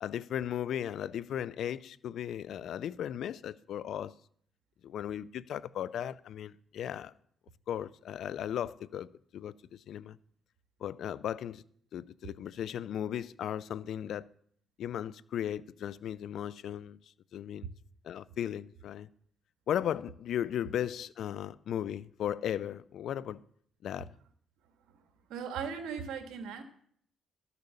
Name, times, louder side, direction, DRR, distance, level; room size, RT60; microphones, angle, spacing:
voice 1, 0.0-4.1 4.8-7.1 7.7-9.1 9.3-10.2 10.8-11.6 11.9-14.3 14.8-17.7 18.0-19.1 19.7-23.4 23.8-24.1, left 10 dB, 70° left, 0.5 m, -36 dB
voice 2, 25.3-26.6, right 6 dB, 90° right, 1.6 m, -38 dB
13.0 x 6.8 x 7.0 m
cardioid pair, 90°, 0 cm